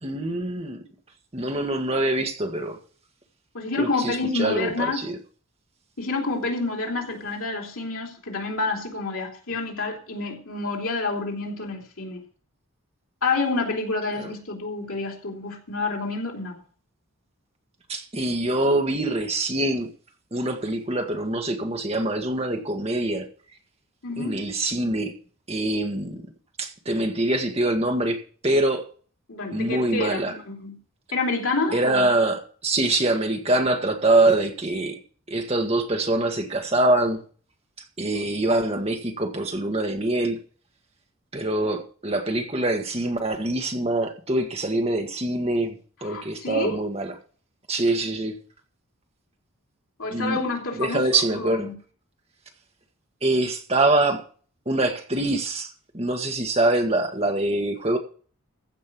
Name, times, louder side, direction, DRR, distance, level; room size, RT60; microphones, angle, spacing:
voice 1, 0.0-0.8 1.3-2.8 3.8-5.1 14.2-14.3 17.9-19.9 20.3-23.3 24.2-25.1 25.5-26.2 26.6-28.8 29.5-30.3 31.7-35.0 35.3-37.2 38.0-40.4 41.3-47.1 47.7-48.4 50.1-50.4 50.8-51.7 53.2-54.2 54.6-55.7 55.9-58.0, right 2 dB, 30° right, 1.5 m, -24 dB
voice 2, 3.5-5.0 6.0-12.2 13.2-16.6 24.0-24.4 29.3-30.8 31.1-32.1 38.1-38.3 46.0-46.8 50.0-51.7, left 3 dB, 80° left, 3.4 m, -28 dB
15.0 x 5.3 x 7.6 m
head